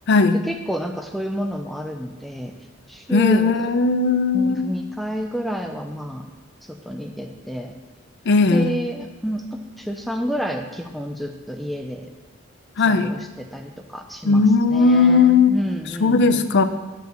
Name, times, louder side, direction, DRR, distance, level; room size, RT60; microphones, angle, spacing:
voice 1, 0.2-2.5 2.9-3.7 4.3-6.3 6.9-7.7 8.5-9.4 9.8-12.1 12.8-14.4 14.7-16.5, equal, ahead, 4 dB, 0.4 m, -29 dB
voice 2, 3.1-4.7 8.3-8.7 12.8-13.1 14.2-15.6 16.0-16.6, left 4 dB, 55° left, 11 dB, 0.5 m, -17 dB
6.9 x 4.7 x 6.7 m, 1.2 s
head